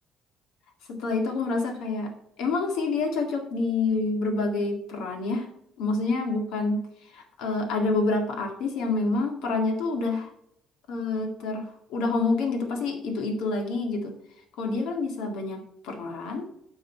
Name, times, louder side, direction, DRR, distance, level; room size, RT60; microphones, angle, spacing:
voice 1, 0.9-2.1 2.4-5.5 5.8-10.3 10.9-14.1 14.6-16.5, left 3 dB, 85° left, 4 dB, 2.0 m, -27 dB
9.4 x 5.5 x 4.5 m, 0.73 s
cardioid pair, 130°, 0 cm